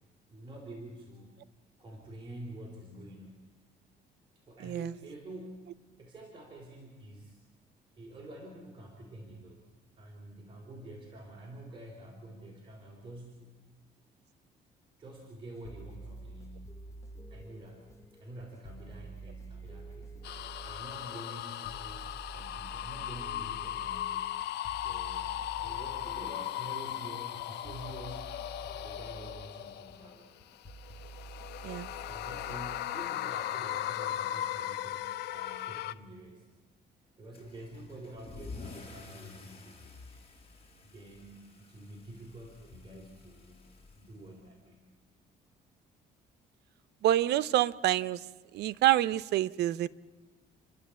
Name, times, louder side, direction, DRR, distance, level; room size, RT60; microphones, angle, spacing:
voice 1, 0.3-1.3 1.8-3.5 4.5-7.4 8.0-9.6 10.0-13.5 15.0-16.8 17.3-17.9 18.1-20.2 20.6-28.2 28.7-30.4 32.0-36.4 37.2-39.9 40.8-43.7 43.9-44.9, right 1 dB, 30° right, -1 dB, 3.6 m, -48 dB
sound 1, 15.5-32.8, right 2 dB, 15° left, 1.2 m, -49 dB
sound 2, 20.2-30.1 30.7-35.9, left 13 dB, 80° left, 0.7 m, -37 dB
Car / Engine starting / Accelerating revving vroom, 37.3-44.7, left 4 dB, 35° left, 5.5 m, -50 dB
voice 2, 47.0-48.2 48.5-49.9, right 13 dB, 75° right, 16 dB, 0.6 m, -27 dB
29.0 x 12.0 x 8.4 m, 1.3 s
cardioid pair, 115°, 17 cm